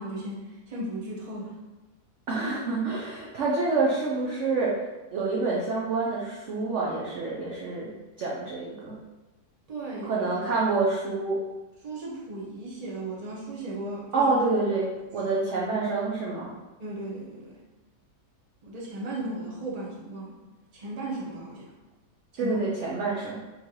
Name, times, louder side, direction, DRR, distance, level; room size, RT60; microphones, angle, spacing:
voice 1, 0.0-1.5 9.7-10.2 11.8-14.3 16.8-17.6 18.6-20.4 20.7-21.7 22.3-22.6, right 1 dB, 30° right, -5 dB, 0.8 m, -36 dB
voice 2, 2.3-4.8 5.1-7.9 8.2-9.0 10.0-11.4 14.1-16.5 22.4-23.4, right 3 dB, 60° right, -4 dB, 0.8 m, -27 dB
4.3 x 3.3 x 2.9 m, 1.2 s
omnidirectional pair, 1.8 m